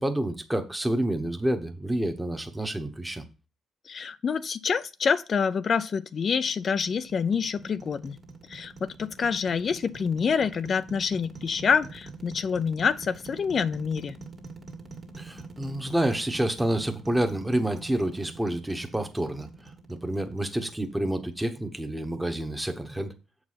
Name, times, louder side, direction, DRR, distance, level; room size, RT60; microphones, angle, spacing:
voice 1, 0.0-3.2 15.2-23.1, right 1 dB, 5° right, 1.1 m, -28 dB
voice 2, 3.8-8.2 8.5-14.2, left 6 dB, 50° left, 0.5 m, -27 dB
sound 1, 6.1-21.3, right 3 dB, 45° right, 1.7 m, -46 dB
7.4 x 4.8 x 5.6 m
cardioid pair, 90°, 0 cm